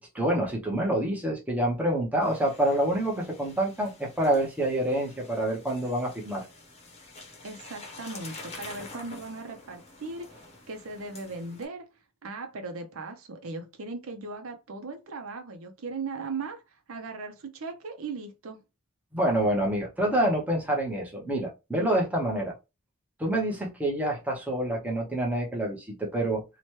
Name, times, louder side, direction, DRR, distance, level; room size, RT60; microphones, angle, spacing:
voice 1, 0.0-6.5 19.1-22.5 23.2-26.4, right 1 dB, 5° right, 0.7 m, -27 dB
sound 1, 2.2-11.6, left 3 dB, 30° left, 0.8 m, -48 dB
voice 2, 7.4-11.9 12.2-16.6 16.9-18.6, right 3 dB, 70° right, 0.6 m, -38 dB
2.9 x 2.2 x 3.0 m
head